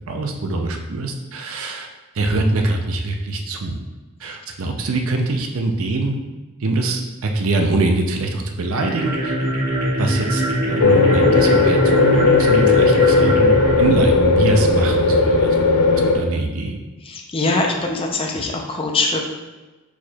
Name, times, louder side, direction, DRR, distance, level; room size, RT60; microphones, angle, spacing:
voice 1, 0.1-1.9 2.1-3.8 4.2-6.2 6.6-9.4 10.0-15.7 16.1-16.8, right 2 dB, 65° right, 3 dB, 0.5 m, -23 dB
sound 1, 8.6-14.9, equal, 45° right, 1.3 m, -23 dB
sound 2, 10.8-16.2, left 4 dB, 90° left, 0.5 m, -16 dB
voice 2, 17.1-19.2, left 3 dB, 25° left, 1 dB, 0.5 m, -22 dB
4.7 x 4.2 x 2.3 m, 1.2 s
head